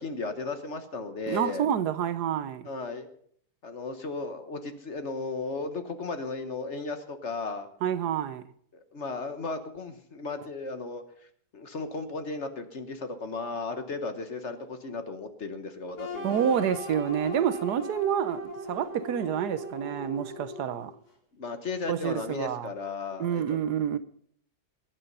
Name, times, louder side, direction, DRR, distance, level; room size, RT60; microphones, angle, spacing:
voice 1, 0.0-1.7 2.6-3.1 3.6-7.7 8.7-11.0 11.5-16.5 21.4-23.6, left 3 dB, 45° left, 1.5 m, -35 dB
voice 2, 1.3-2.7 7.8-8.4 16.2-20.9 21.9-22.7 23.2-24.0, right 9 dB, 80° right, 1.4 m, -28 dB
sound 1, 16.0-20.9, equal, 65° left, 3.3 m, -38 dB
21.5 x 9.1 x 5.5 m
omnidirectional pair, 1.7 m